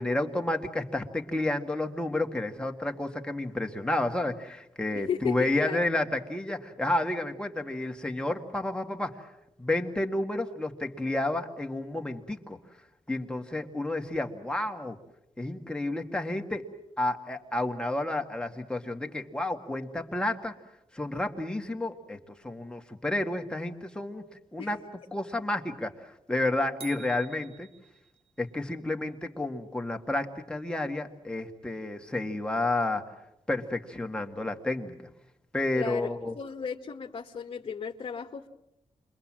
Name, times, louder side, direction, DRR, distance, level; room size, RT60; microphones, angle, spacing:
voice 1, 0.0-9.2 9.6-12.6 13.1-15.0 15.4-16.7 17.0-20.5 20.9-24.8 25.1-27.7 28.4-33.0 33.5-35.0 35.5-36.3, left 2 dB, 10° left, 3 dB, 1.8 m, -31 dB
voice 2, 5.1-5.8 24.6-24.7 35.7-36.1 36.3-38.5, left 7 dB, 50° left, 2 dB, 1.3 m, -34 dB
sound 1, 26.8-28.4, right 7 dB, 60° right, 1.8 m, -49 dB
29.0 x 23.5 x 7.5 m, 0.87 s
wide cardioid pair, 135°, 11 cm